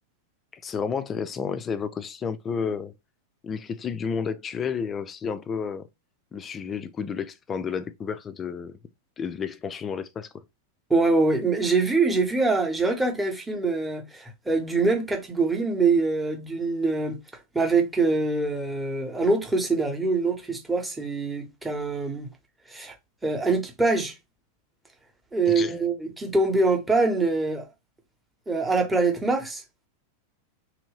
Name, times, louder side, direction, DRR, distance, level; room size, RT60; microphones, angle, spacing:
voice 1, 0.5-2.9 3.4-5.9 6.3-8.8 9.2-10.3 25.5-25.8, left 6 dB, 25° left, 0.4 m, -31 dB
voice 2, 10.9-17.2 17.5-22.3 22.7-22.9 23.2-24.1 25.3-27.7 28.5-29.6, right 3 dB, 10° right, 0.9 m, -24 dB
3.0 x 2.6 x 3.2 m
figure-of-eight pair, 90°, 0 cm